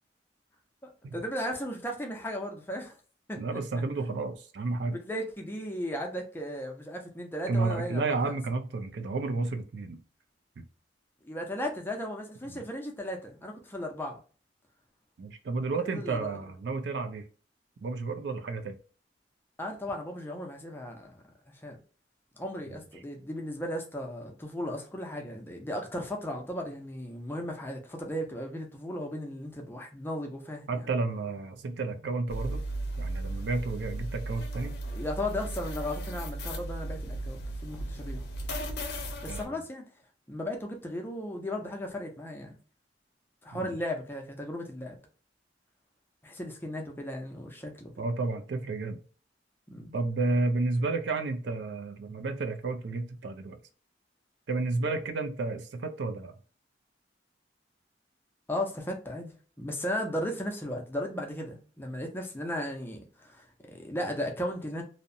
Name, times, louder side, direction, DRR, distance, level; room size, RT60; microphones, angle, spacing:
voice 1, 0.8-2.9 3.3-3.4 5.0-8.4 11.2-14.2 15.9-16.4 19.6-21.2 21.6-21.8 22.4-30.9 34.9-38.2 39.2-39.8 40.3-42.6 43.4-45.0 46.2-48.1 49.7-49.9 58.5-59.3 59.6-64.8, left 1 dB, 10° left, 0.5 m, -36 dB
voice 2, 3.4-5.0 7.5-10.0 10.6-10.7 12.5-12.6 15.2-17.2 17.8-18.8 30.7-32.6 33.0-34.8 39.3-39.5 43.5-43.8 48.0-49.0 49.9-53.6 54.5-56.3, right 3 dB, 65° right, 0.4 m, -31 dB
sound 1, 32.3-39.4, right 1 dB, 60° left, 0.5 m, -36 dB
2.7 x 2.0 x 2.5 m
head